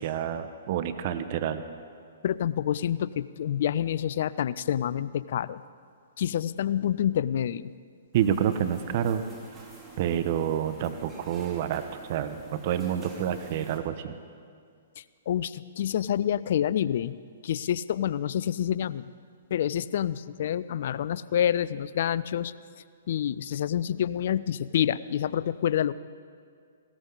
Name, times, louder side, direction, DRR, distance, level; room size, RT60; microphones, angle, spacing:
voice 1, 0.0-1.6 8.1-9.2 10.0-14.2, right 9 dB, 45° right, 10 dB, 0.9 m, -28 dB
voice 2, 2.2-5.6 6.2-7.7 15.0-17.1 17.4-19.1 19.5-22.5 23.1-25.9, left 10 dB, 55° left, 17 dB, 0.5 m, -28 dB
sound 1, 8.1-13.8, right 3 dB, 15° right, 2.7 m, -49 dB
19.0 x 17.0 x 4.0 m, 2.2 s
hypercardioid pair, 125°, 0 cm